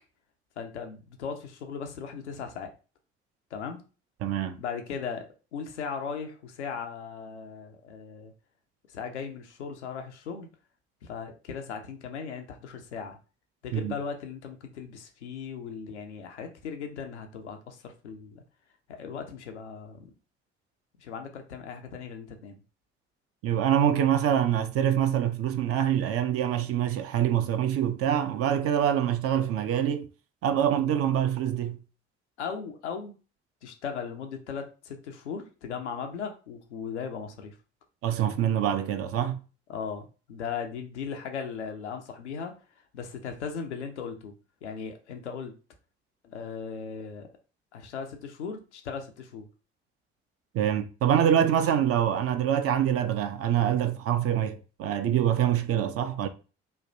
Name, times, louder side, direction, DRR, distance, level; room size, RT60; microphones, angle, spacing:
voice 1, 0.6-2.7 3.5-3.8 4.6-8.3 8.9-10.5 11.0-13.2 13.6-18.4 19.0-20.1 21.0-22.6 32.4-33.1 33.6-37.5 39.7-42.5 42.9-44.3 44.6-45.5 46.2-47.3 47.7-49.5, left 6 dB, 85° left, 0.5 m, -37 dB
voice 2, 4.2-4.6 13.7-13.9 23.4-30.1 30.4-31.8 38.0-39.4 50.5-56.3, right 10 dB, 45° right, 0.5 m, -25 dB
3.0 x 2.3 x 2.6 m
figure-of-eight pair, 50°, 33 cm